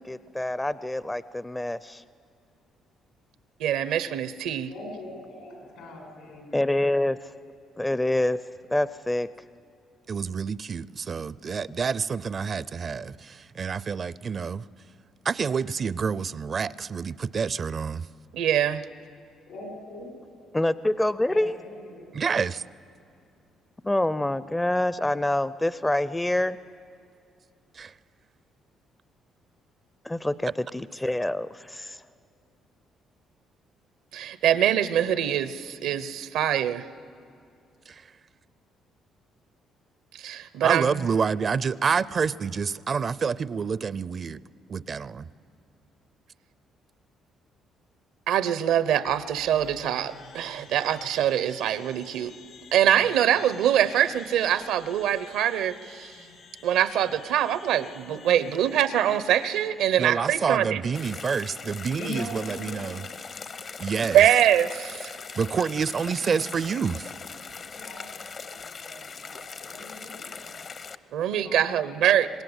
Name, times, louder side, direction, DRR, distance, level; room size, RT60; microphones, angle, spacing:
voice 1, 0.1-2.0 6.5-7.2 7.8-8.4 8.7-9.3 20.5-21.6 23.8-26.6 30.0-32.0, left 1 dB, 10° left, 16 dB, 0.5 m, -26 dB
voice 2, 3.6-4.7 18.3-18.8 34.1-36.9 40.1-41.1 48.3-52.3 52.7-56.1 56.6-60.8 64.1-65.1 71.1-72.3, right 10 dB, 85° right, 14 dB, 0.8 m, -24 dB
voice 3, 4.7-6.9 19.5-20.1 20.4-20.6 21.3-22.3 58.0-58.8 60.7-61.3 62.0-63.2 65.8-66.7 67.7-70.7 71.3-72.2, left 1 dB, 80° left, 0 dB, 7.8 m, -43 dB
voice 4, 10.1-14.6 15.2-18.1 22.1-22.6 27.7-27.9 37.9-38.1 40.6-44.4 44.7-45.3 60.0-63.0 63.8-64.3 65.4-67.1, right 6 dB, 45° right, 19 dB, 0.5 m, -28 dB
sound 1, 49.1-59.7, left 6 dB, 65° left, 2.6 m, -50 dB
sound 2, 60.9-70.9, left 5 dB, 45° left, 0.8 m, -40 dB
25.5 x 20.5 x 8.1 m, 2.5 s
cardioid pair, 85°, 0 cm